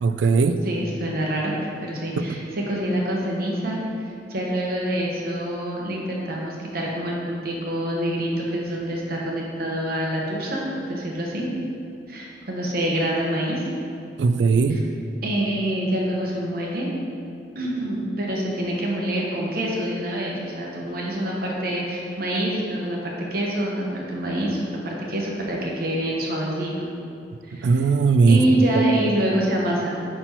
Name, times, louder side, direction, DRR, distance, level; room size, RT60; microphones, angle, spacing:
voice 1, 0.0-0.6 2.2-2.4 14.2-14.9 27.6-28.4 28.7-28.8, right 4 dB, 80° right, 9 dB, 0.3 m, -19 dB
voice 2, 0.6-1.5 1.8-3.8 4.3-11.5 12.1-13.7 14.7-14.8 15.2-16.9 17.5-26.9 27.4-27.9 28.3-30.1, right 1 dB, 55° right, -2 dB, 1.0 m, -26 dB
5.5 x 4.3 x 4.4 m, 2.5 s
head